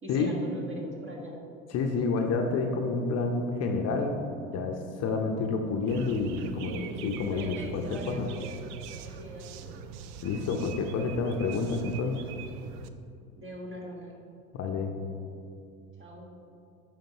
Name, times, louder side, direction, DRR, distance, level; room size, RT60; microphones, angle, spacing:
voice 1, 0.0-1.4 6.6-8.6 8.9-9.8 13.4-14.1 16.0-16.4, right 1 dB, 30° right, -1 dB, 1.5 m, -42 dB
voice 2, 1.7-6.7 7.0-8.3 10.2-12.2 14.5-14.9, left 4 dB, 40° left, 3 dB, 0.7 m, -29 dB
sound 1, 5.9-12.9, right 7 dB, 55° right, 0.5 m, -43 dB
8.9 x 5.1 x 2.9 m, 2.6 s
hypercardioid pair, 85°, 42 cm